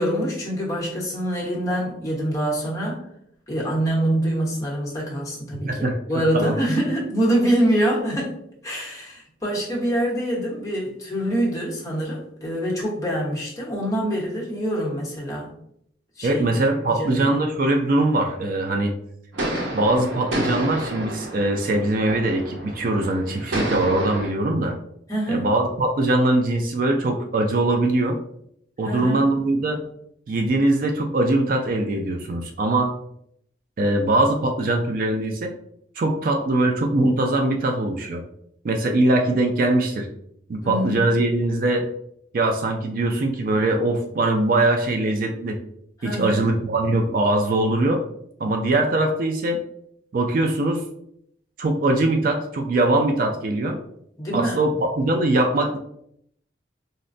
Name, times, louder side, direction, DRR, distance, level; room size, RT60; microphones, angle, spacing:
voice 1, 0.0-3.0 3.5-8.3 8.6-15.5 16.2-17.2 25.1-25.5 28.8-29.3 40.6-41.0 46.0-46.4 54.2-54.6, right 1 dB, 15° left, -4 dB, 0.9 m, -25 dB
voice 2, 5.5-6.6 16.2-18.9 19.7-24.8 25.3-28.2 28.8-29.8 30.3-32.9 33.8-35.5 36.0-38.2 38.6-40.1 40.5-41.9 42.3-45.6 46.0-48.0 48.4-49.6 50.1-50.8 51.6-53.8 54.3-55.8, right 2 dB, 50° right, 4 dB, 0.3 m, -22 dB
sound 1, 19.3-24.3, right 1 dB, 75° right, 0.7 m, -30 dB
4.0 x 2.1 x 2.5 m, 0.72 s
head